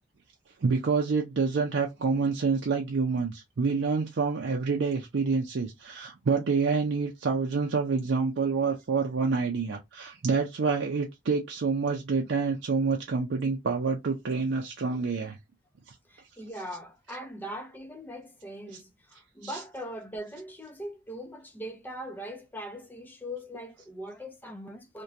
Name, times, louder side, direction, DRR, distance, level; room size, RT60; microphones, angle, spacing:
voice 1, 0.6-15.4 15.9-16.0 19.4-19.5, right 4 dB, 70° right, 0.5 m, -27 dB
voice 2, 16.0-25.0, equal, 10° left, 0.5 m, -41 dB
2.8 x 2.2 x 2.4 m
head